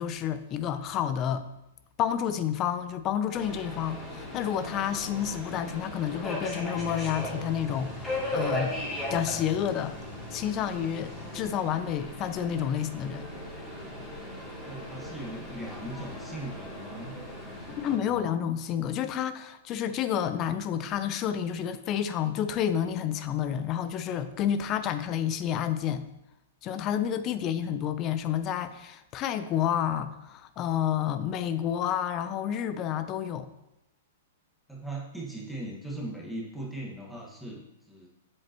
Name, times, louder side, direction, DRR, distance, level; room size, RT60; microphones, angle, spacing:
voice 1, 0.0-1.5 2.0-8.7 9.1-10.0 10.3-13.3 17.8-26.0 26.6-33.5, left 9 dB, 35° left, 12 dB, 0.6 m, -30 dB
Subway metro underground, 3.3-17.9, left 1 dB, 15° left, 2.7 m, -38 dB
sound 1, 6.5-12.0, right 2 dB, 45° right, 2.5 m, -46 dB
voice 2, 14.6-17.2 17.4-18.3 34.7-38.1, right 1 dB, ahead, -5 dB, 1.6 m, -39 dB
7.8 x 7.5 x 3.0 m, 0.90 s
hypercardioid pair, 130°, 0 cm